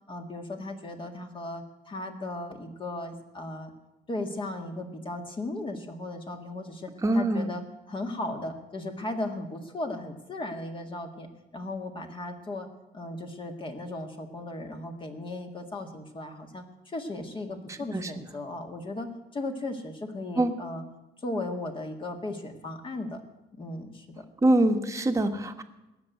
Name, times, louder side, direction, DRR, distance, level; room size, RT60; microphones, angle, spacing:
voice 1, 0.1-3.7 4.1-12.7 12.9-20.8 21.2-23.2 23.6-24.2, left 2 dB, 30° left, 4 dB, 1.8 m, -36 dB
voice 2, 7.0-7.5 17.9-18.1 20.4-20.5 24.4-25.6, right 1 dB, 20° right, 6 dB, 1.3 m, -24 dB
17.5 x 7.0 x 9.2 m, 0.99 s
cardioid pair, 110°, 17 cm